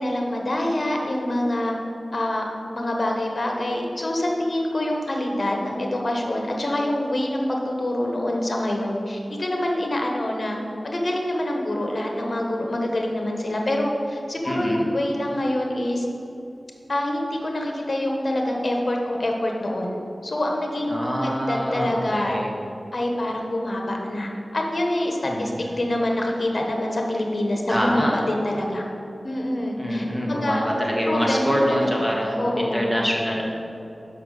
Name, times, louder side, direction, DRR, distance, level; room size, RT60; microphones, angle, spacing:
voice 1, 0.0-1.8 2.1-2.5 2.7-10.6 10.8-16.1 16.9-20.0 20.2-22.4 22.9-28.8 29.2-30.7 31.1-32.1 32.4-32.9, left 1 dB, 55° left, 0 dB, 1.2 m, -26 dB
voice 2, 14.4-14.9 20.9-22.5 25.2-25.7 27.7-28.2 29.8-33.4, equal, 5° right, -3 dB, 1.7 m, -25 dB
5.9 x 5.7 x 6.6 m, 2.8 s
cardioid pair, 50°, 0 cm